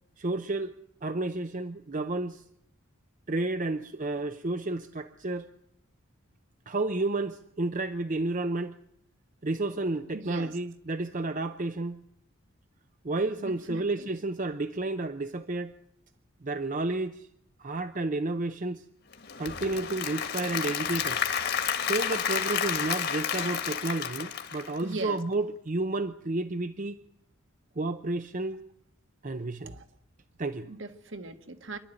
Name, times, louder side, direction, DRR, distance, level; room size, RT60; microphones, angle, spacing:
voice 1, 0.2-0.7 1.0-2.4 3.3-5.5 6.7-8.8 9.4-12.0 13.0-15.7 16.4-17.3 17.6-18.8 19.4-21.3 21.9-27.0 27.8-28.6 29.2-29.7 30.4-30.7, right 2 dB, 40° right, 9 dB, 0.7 m, -31 dB
voice 2, 10.1-10.6 13.7-14.1 24.8-25.2 29.6-29.8 30.6-31.8, right 3 dB, 60° right, 8 dB, 1.6 m, -39 dB
Applause / Crowd, 19.1-25.2, left 8 dB, 50° left, 1.7 m, -31 dB
26.0 x 12.5 x 8.9 m, 0.74 s
head